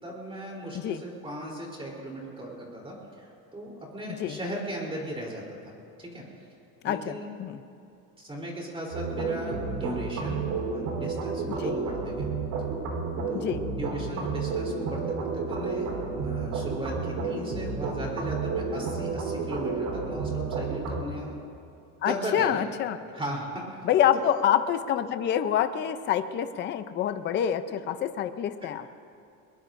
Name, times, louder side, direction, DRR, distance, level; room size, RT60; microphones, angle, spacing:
voice 1, 0.0-3.3 3.5-5.7 6.0-6.2 6.8-7.3 8.2-12.3 13.3-21.4 22.0-22.6 23.1-23.8 24.1-24.4 27.7-27.8, right 1 dB, 15° right, -2 dB, 3.3 m, -37 dB
voice 2, 6.8-7.6 11.6-11.8 13.3-13.6 22.0-23.0 23.8-28.9, left 10 dB, 30° left, 11 dB, 0.5 m, -27 dB
sound 1, 8.9-21.0, right 4 dB, 80° right, 3.8 m, -31 dB
21.5 x 21.5 x 2.6 m, 2.6 s
cardioid pair, 145°, 40 cm